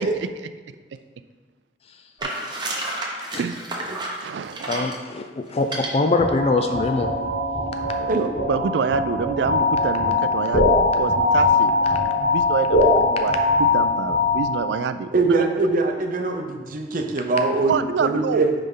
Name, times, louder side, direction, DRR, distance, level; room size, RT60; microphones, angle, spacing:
sound 1, 2.2-5.0 5.6-5.9, right 2 dB, 25° right, 0.9 m, -30 dB
voice 1, 3.4-4.9 7.8-15.4 17.7-18.5, right 6 dB, 70° right, 12 dB, 0.3 m, -27 dB
voice 2, 4.7-7.1, left 3 dB, 35° left, 6 dB, 0.4 m, -23 dB
sound 2, 6.2-14.9, left 2 dB, 55° left, 2.1 m, -21 dB
voice 3, 15.1-18.5, right 3 dB, 50° right, 4 dB, 0.7 m, -22 dB
9.4 x 3.5 x 3.8 m, 1.4 s
head